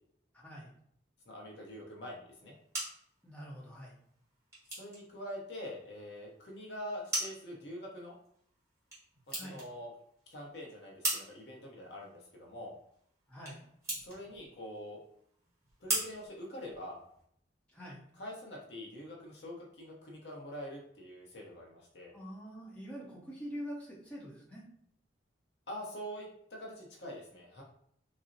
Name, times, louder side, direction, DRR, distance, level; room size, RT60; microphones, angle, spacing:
voice 1, 0.3-0.7 3.2-3.9 9.3-9.6 13.3-13.6 17.7-18.0 22.1-24.6, equal, 5° left, -6 dB, 0.7 m, -45 dB
voice 2, 1.3-2.5 4.7-8.1 9.3-9.9 10.3-12.7 14.0-15.0 15.8-17.0 18.2-22.1 25.7-27.6, equal, 65° left, -1 dB, 0.8 m, -45 dB
sound 1, 2.3-17.2, right 1 dB, 15° right, 1.1 m, -42 dB
4.0 x 2.0 x 2.6 m, 0.68 s
head